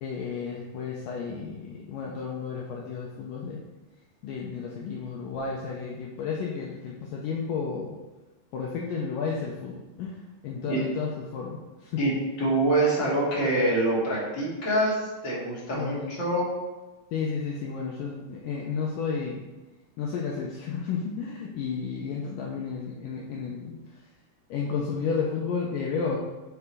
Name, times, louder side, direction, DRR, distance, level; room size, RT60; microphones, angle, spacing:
voice 1, 0.0-3.6 4.2-8.0 8.5-12.0 15.7-16.2 17.1-19.5 20.0-24.0 24.5-26.2, left 5 dB, 80° left, -3 dB, 2.0 m, -32 dB
voice 2, 12.4-16.5, right 1 dB, 35° left, -6 dB, 2.4 m, -25 dB
6.8 x 4.8 x 5.5 m, 1.1 s
omnidirectional pair, 4.6 m